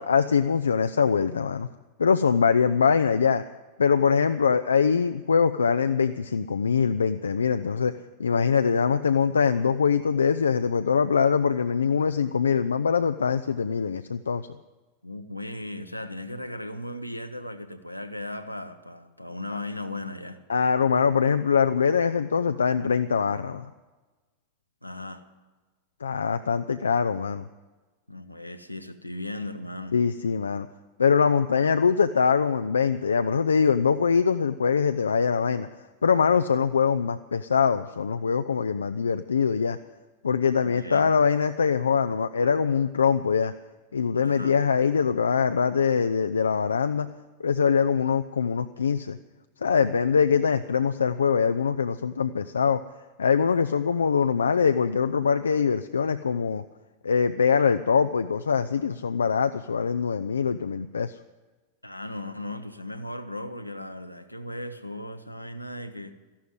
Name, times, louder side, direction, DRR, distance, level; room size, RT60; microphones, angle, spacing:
voice 1, 0.0-1.7 2.0-3.4 3.8-7.9 8.2-14.5 20.5-23.7 26.0-27.4 29.9-30.7 31.0-35.7 36.0-39.8 40.2-43.5 43.9-47.1 47.4-49.2 49.6-52.8 53.2-56.6 57.0-61.2, left 6 dB, 70° left, 10 dB, 0.4 m, -23 dB
voice 2, 15.0-20.4 24.8-25.2 28.1-29.9 40.6-41.1 44.2-44.5 61.8-66.1, left 1 dB, 90° left, 8 dB, 1.0 m, -37 dB
14.0 x 11.5 x 8.0 m, 1.2 s
figure-of-eight pair, 90°, 0 cm